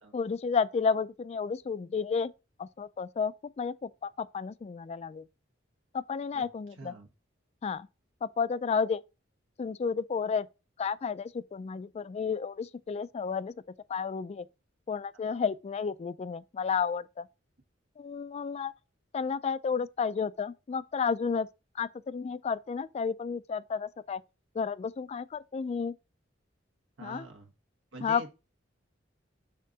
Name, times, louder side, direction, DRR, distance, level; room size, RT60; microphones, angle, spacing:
voice 1, 0.1-2.3 2.6-5.3 5.9-6.9 7.6-7.9 8.2-9.0 9.6-10.5 10.8-13.5 13.9-14.5 14.9-17.3 18.0-18.7 19.1-21.5 21.7-24.2 24.5-25.9 27.0-27.3 28.0-28.2, left 5 dB, 35° left, 0.3 m, -32 dB
voice 2, 6.8-7.1 27.0-27.5 27.9-28.3, right 2 dB, 85° right, 1.3 m, -45 dB
6.6 x 3.7 x 3.9 m
head